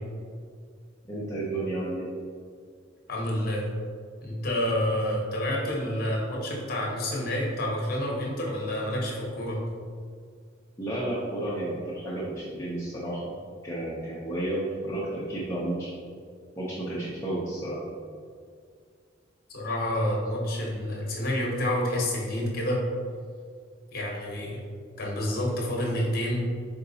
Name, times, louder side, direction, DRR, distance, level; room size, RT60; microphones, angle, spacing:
voice 1, 1.1-2.1 10.8-13.3 13.6-15.9 16.6-17.8, right 1 dB, 15° left, -8 dB, 0.6 m, -32 dB
voice 2, 3.1-3.7 4.2-9.6 19.5-22.8 23.9-24.6 25.0-26.5, left 1 dB, 50° left, -2 dB, 0.9 m, -28 dB
4.4 x 3.8 x 2.7 m, 2.1 s
head